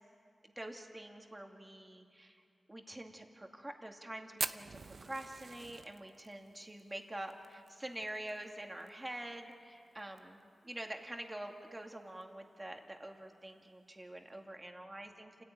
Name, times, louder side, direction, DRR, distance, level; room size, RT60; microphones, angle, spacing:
voice 1, 0.4-2.4 2.7-10.4 10.6-15.4, right 1 dB, 15° right, 2 dB, 2.4 m, -46 dB
Fire, 4.4-8.9 9.1-9.2 9.5-9.6 10.0-10.4 10.9-11.0 12.1-12.2, right 4 dB, 55° right, 0.8 m, -42 dB
29.0 x 15.0 x 9.7 m, 2.6 s
wide cardioid pair, 100°, 0 cm